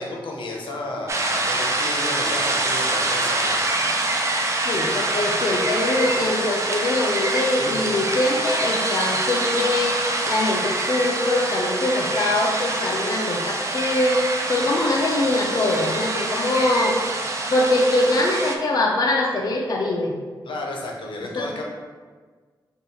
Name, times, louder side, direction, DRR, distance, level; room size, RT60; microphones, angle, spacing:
voice 1, 0.0-3.7 4.7-5.1 20.4-21.6, left 2 dB, 85° left, -1 dB, 0.7 m, -32 dB
sound 1, 1.1-18.6, right 2 dB, 35° right, 0.4 m, -25 dB
voice 2, 4.7-10.0 10.3-14.2 14.5-17.0 17.5-20.1 21.3-21.5, left 2 dB, 50° left, -1 dB, 0.4 m, -23 dB
3.5 x 2.3 x 4.1 m, 1.5 s
wide cardioid pair, 125°, 8 cm